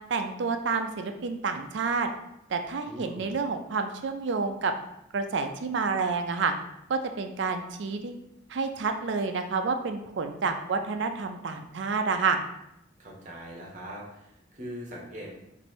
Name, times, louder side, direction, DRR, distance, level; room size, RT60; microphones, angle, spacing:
voice 1, 0.1-2.1 2.5-4.7 5.1-6.5 6.9-8.1 8.5-12.4, right 4 dB, 65° right, 6 dB, 0.4 m, -29 dB
voice 2, 2.9-3.3 13.0-15.3, equal, 40° right, -2 dB, 0.9 m, -41 dB
3.1 x 2.6 x 4.3 m, 0.82 s
head